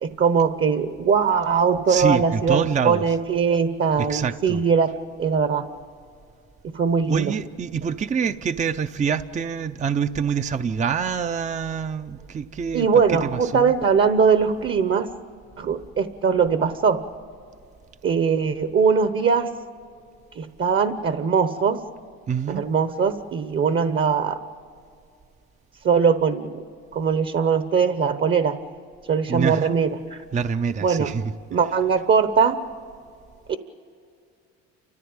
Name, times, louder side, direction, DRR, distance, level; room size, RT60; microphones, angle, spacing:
voice 1, 0.0-5.6 6.7-7.3 12.7-15.1 15.6-17.0 18.0-19.5 20.4-21.8 22.5-24.4 25.8-26.6 26.9-28.6 29.1-30.2 30.8-31.1 31.5-32.6 33.5-33.6, right 6 dB, 40° right, 1.1 m, -21 dB
voice 2, 1.9-3.0 4.0-4.6 7.1-13.8 22.3-22.6 29.3-29.8 30.3-31.3, right 6 dB, 25° right, 0.6 m, -26 dB
30.0 x 14.5 x 8.8 m
supercardioid pair, 90°, 30 cm